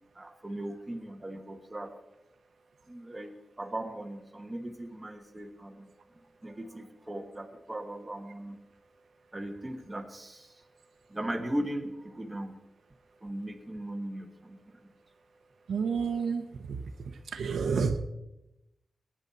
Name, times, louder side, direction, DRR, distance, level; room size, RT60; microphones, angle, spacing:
voice 1, 0.1-1.9 2.9-8.6 9.3-10.6 11.1-12.5 13.2-14.9, right 1 dB, 15° right, 5 dB, 1.2 m, -38 dB
voice 2, 15.7-16.4 17.3-18.0, right 5 dB, 85° right, 7 dB, 1.0 m, -28 dB
19.0 x 9.9 x 4.1 m, 0.91 s
wide cardioid pair, 165°, 0 cm